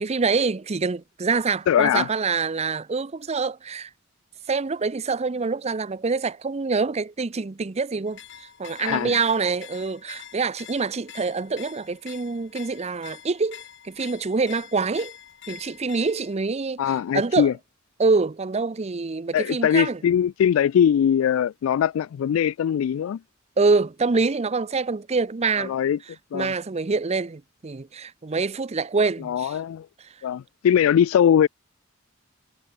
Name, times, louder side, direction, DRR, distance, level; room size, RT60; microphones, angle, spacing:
voice 1, 0.0-3.9 4.5-15.1 15.5-17.5 18.0-20.0 23.6-25.7 26.3-29.6, right 4 dB, 30° right, 0.6 m, -25 dB
voice 2, 1.7-2.1 8.8-9.2 16.8-17.5 19.3-23.2 25.6-26.0 26.3-26.5 29.2-29.9 30.2-31.5, left 9 dB, 85° left, 0.3 m, -21 dB
sound 1, 8.1-16.4, left 10 dB, 60° left, 2.2 m, -45 dB
head